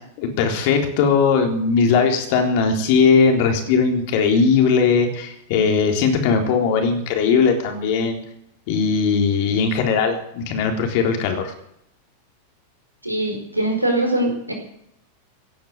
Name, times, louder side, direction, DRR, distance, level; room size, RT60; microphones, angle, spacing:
voice 1, 0.2-8.2 8.7-11.5, left 5 dB, 45° left, 3 dB, 3.8 m, -19 dB
voice 2, 13.0-14.5, right 1 dB, 85° right, 2 dB, 4.9 m, -22 dB
17.0 x 10.5 x 7.9 m, 0.73 s
figure-of-eight pair, 90°, 0 cm